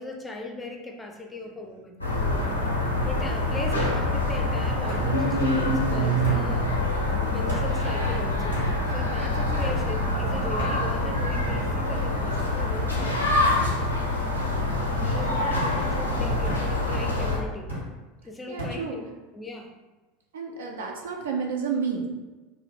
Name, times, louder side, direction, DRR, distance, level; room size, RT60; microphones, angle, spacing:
voice 1, 0.0-2.0 3.0-6.7 7.3-8.6 8.9-13.2 15.0-17.7 18.2-19.0 19.3-19.7, left 2 dB, 15° left, 2 dB, 0.5 m, -38 dB
sound 1, 1.4-1.8 2.2-2.7 3.8-3.9 4.9-5.1 6.2-6.4 7.5-7.7 8.5-8.7 9.6-9.8 10.6-10.8 11.5-11.9 12.7-12.9 13.6-13.8 14.7-14.8 15.5-15.8 16.4-16.7 17.7-17.9 18.6-18.8, equal, 85° right, 1.0 m, -35 dB
sound 2, 2.0-17.4, left 1 dB, 90° left, 0.5 m, -25 dB
voice 2, 18.5-19.0 20.3-22.1, right 5 dB, 65° right, 1 dB, 0.4 m, -30 dB
2.5 x 2.1 x 3.6 m, 1.2 s
figure-of-eight pair, 75°, 0 cm